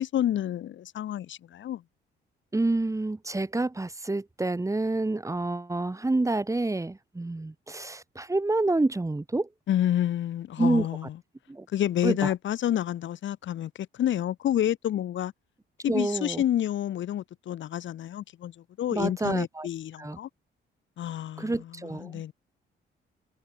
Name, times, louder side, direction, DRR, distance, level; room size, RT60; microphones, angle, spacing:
voice 1, 0.0-1.8 9.7-11.2 11.7-13.7 14.0-15.3 15.8-18.5 18.8-20.3 21.0-21.7 21.9-22.3, left 11 dB, 70° left, 3.7 m, -29 dB
voice 2, 2.5-9.5 10.6-10.9 11.5-11.6 12.0-12.3 15.9-16.4 18.9-19.7 20.0-20.2 21.4-22.2, right 2 dB, 15° right, 3.3 m, -28 dB
cardioid pair, 90°, 20 cm